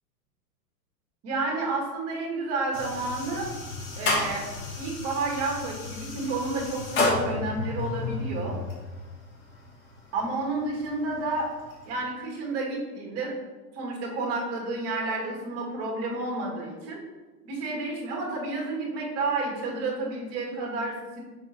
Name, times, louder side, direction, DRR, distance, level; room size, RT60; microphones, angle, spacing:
voice 1, 1.2-3.5 4.0-4.4 4.8-8.6 10.1-11.5 11.9-13.4 13.7-17.0 17.4-21.2, right 3 dB, 30° right, -1 dB, 1.9 m, -30 dB
sound 1, 2.7-12.0, left 2 dB, 25° left, 1.3 m, -32 dB
5.9 x 3.8 x 4.2 m, 1.3 s
hypercardioid pair, 125°, 49 cm